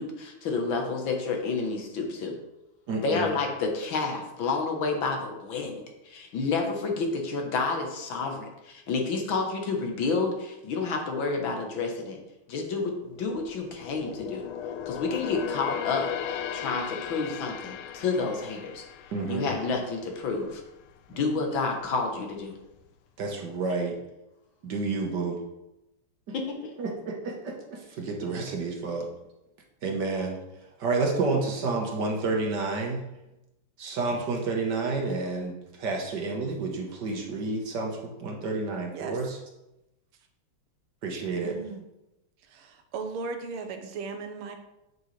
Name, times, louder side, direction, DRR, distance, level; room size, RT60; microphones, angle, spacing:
voice 1, 0.0-2.4 3.0-12.2 12.5-14.5 14.9-18.9 19.3-20.6 21.2-22.6 26.3-26.6, left 4 dB, 65° left, 3 dB, 1.8 m, -30 dB
voice 2, 2.9-3.3 19.1-19.5 21.1-21.3 23.2-24.0 24.6-25.4 26.3-26.4 26.8-29.1 29.8-33.0 33.8-39.4 41.0-41.6, right 3 dB, 55° right, 1 dB, 1.6 m, -30 dB
sound 1, 13.1-20.6 21.0-21.2 21.7-22.5 22.8-22.9, left 9 dB, 85° left, 1.5 m, -37 dB
voice 3, 41.3-41.8 42.4-44.6, right 4 dB, 80° right, 6 dB, 1.7 m, -37 dB
7.9 x 7.7 x 3.2 m, 0.92 s
omnidirectional pair, 2.4 m